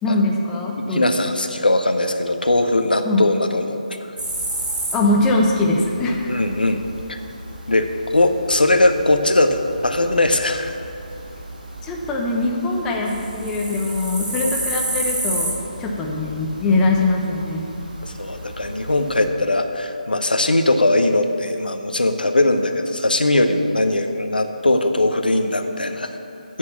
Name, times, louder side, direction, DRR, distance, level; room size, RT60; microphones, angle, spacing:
voice 1, 0.0-1.1 3.0-3.2 4.9-6.3 11.8-17.7, left 2 dB, 10° left, -1 dB, 0.8 m, -22 dB
voice 2, 0.8-4.1 6.3-6.8 7.1-7.2 7.7-10.8 14.3-14.6 18.0-26.2, left 2 dB, 90° left, 7 dB, 0.8 m, -20 dB
sound 1, 4.2-19.3, right 2 dB, 70° right, 2.1 m, -32 dB
8.6 x 6.4 x 7.2 m, 2.7 s
figure-of-eight pair, 155°, 5 cm